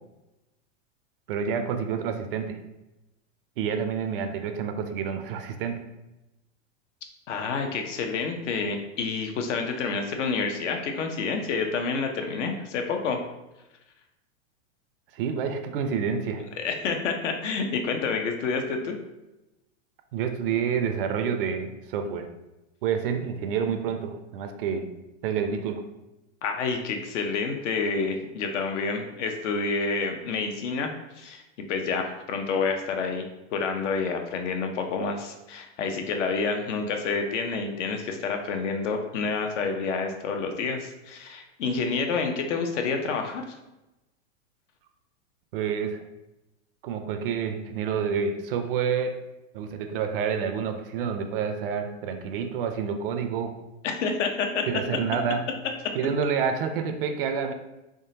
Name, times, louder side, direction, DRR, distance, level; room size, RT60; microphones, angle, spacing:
voice 1, 1.3-2.6 3.6-5.8 7.7-7.8 15.1-16.4 20.1-22.3 22.8-24.9 25.2-25.8 45.5-46.0 46.8-49.2 49.5-53.5 54.7-55.5 55.9-57.5, right 6 dB, 45° right, 7 dB, 0.4 m, -28 dB
voice 2, 7.3-13.2 16.6-19.0 26.4-31.4 31.7-33.3 33.5-43.4 53.8-54.6, left 4 dB, 65° left, 4 dB, 0.7 m, -28 dB
3.6 x 3.2 x 2.7 m, 0.98 s
hypercardioid pair, 135°, 38 cm